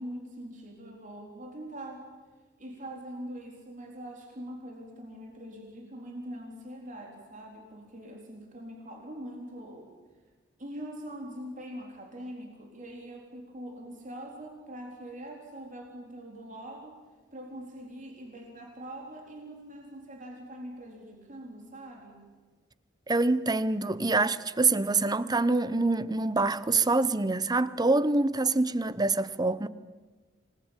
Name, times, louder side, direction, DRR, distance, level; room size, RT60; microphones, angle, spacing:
voice 1, 0.0-2.1 2.6-9.9 10.6-17.0 17.3-22.3, right 1 dB, 45° right, 4.0 m, -43 dB
voice 2, 23.1-29.7, right 3 dB, 20° right, 0.8 m, -25 dB
26.5 x 20.0 x 9.0 m
head